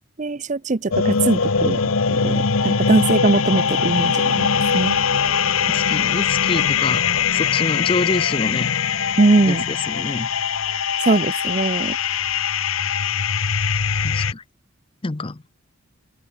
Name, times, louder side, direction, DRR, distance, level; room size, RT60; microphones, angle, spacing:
voice 1, 0.2-1.8 2.1-4.5 4.7-5.0 9.2-9.6 11.0-12.0, right 3 dB, 35° right, 0.6 m, -20 dB
sound 1, 0.9-14.3, left 6 dB, 85° left, 1.1 m, -21 dB
voice 2, 5.3-7.0 7.3-8.7 9.5-9.6 9.9-10.3 14.0-14.4 15.0-15.4, left 3 dB, 25° left, 0.6 m, -26 dB
open air
head